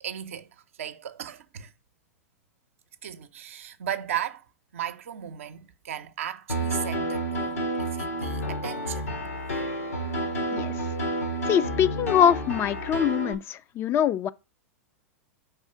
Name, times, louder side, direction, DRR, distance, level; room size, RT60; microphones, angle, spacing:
voice 1, 0.0-0.5 0.8-1.7 3.0-4.4 4.7-9.1, right 10 dB, 70° right, 0.6 m, -36 dB
Piano, 6.5-13.3, right 1 dB, 85° left, 1.3 m, -30 dB
voice 2, 11.5-14.3, left 9 dB, 30° left, 0.4 m, -23 dB
4.8 x 3.6 x 5.5 m
hypercardioid pair, 95°, 8 cm